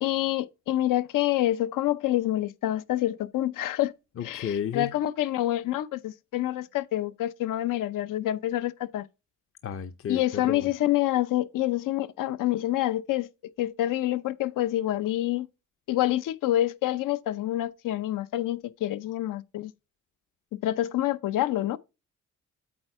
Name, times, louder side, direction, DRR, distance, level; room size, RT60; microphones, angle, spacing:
voice 1, 0.0-3.9 4.2-9.0 10.1-13.3 13.6-15.5 15.9-19.7 20.5-21.8, left 14 dB, 80° left, 0.7 m, -27 dB
voice 2, 4.2-4.9 9.6-10.7, left 8 dB, 45° left, 0.7 m, -32 dB
8.6 x 4.4 x 4.8 m
cardioid pair, 100°, 32 cm